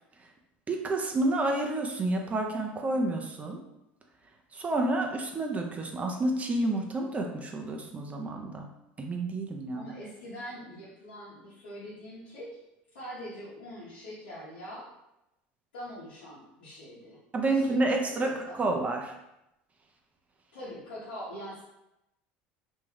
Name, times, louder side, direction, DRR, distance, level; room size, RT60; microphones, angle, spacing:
voice 1, 0.7-3.6 4.5-8.7 9.0-9.9 17.3-19.1, right 2 dB, 25° right, 2 dB, 0.4 m, -29 dB
voice 2, 9.7-12.5 12.9-14.9 15.7-17.2 17.4-17.8 18.1-18.6 20.5-21.6, equal, 85° left, -10 dB, 0.9 m, -43 dB
2.6 x 2.3 x 3.1 m, 0.88 s
hypercardioid pair, 80°, 5 cm